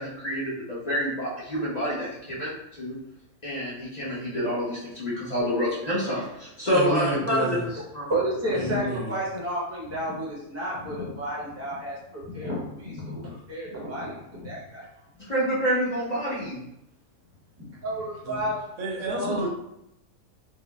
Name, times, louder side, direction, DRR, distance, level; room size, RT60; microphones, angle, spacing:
voice 1, 0.0-3.0 3.4-7.5 7.9-8.1 15.2-16.6, equal, 35° left, -7 dB, 0.9 m, -28 dB
voice 2, 6.7-7.6 8.5-9.2 18.3-18.4 18.8-19.5, right 2 dB, 65° right, 1 dB, 0.9 m, -30 dB
voice 3, 8.1-14.8 17.6-18.6 19.1-19.5, right 1 dB, 15° right, -6 dB, 0.8 m, -31 dB
4.6 x 2.1 x 2.3 m, 0.82 s
omnidirectional pair, 1.5 m